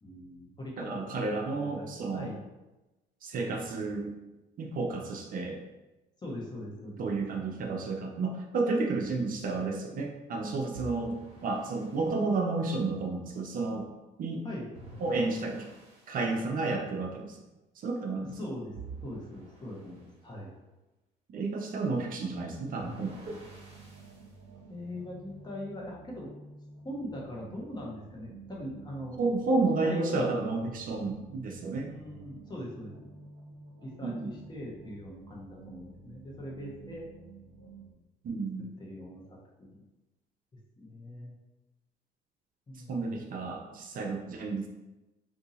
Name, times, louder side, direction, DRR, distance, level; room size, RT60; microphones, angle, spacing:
voice 1, 0.0-2.4 6.2-7.0 14.4-14.7 18.4-20.5 24.7-26.3 26.8-29.2 29.5-30.4 31.9-33.1 33.8-37.1 38.8-39.2 39.7-39.8 40.8-41.3 42.7-43.2, equal, 25° left, -3 dB, 1.0 m, -41 dB
voice 2, 0.8-2.3 3.2-4.1 4.6-5.6 7.0-11.2 11.4-13.9 14.2-14.4 15.0-15.7 16.1-17.4 17.8-18.3 21.3-23.4 29.2-31.9 34.0-34.3 38.2-38.7 42.8-44.7, right 3 dB, 50° right, 2 dB, 0.5 m, -31 dB
sound 1, 10.7-12.2 14.7-16.2 18.7-20.1 22.7-24.3, right 2 dB, 35° right, 1.3 m, -48 dB
sound 2, 23.3-37.9, right 4 dB, 85° right, 0.8 m, -51 dB
2.7 x 2.7 x 3.9 m, 1.0 s
cardioid pair, 100°, 18 cm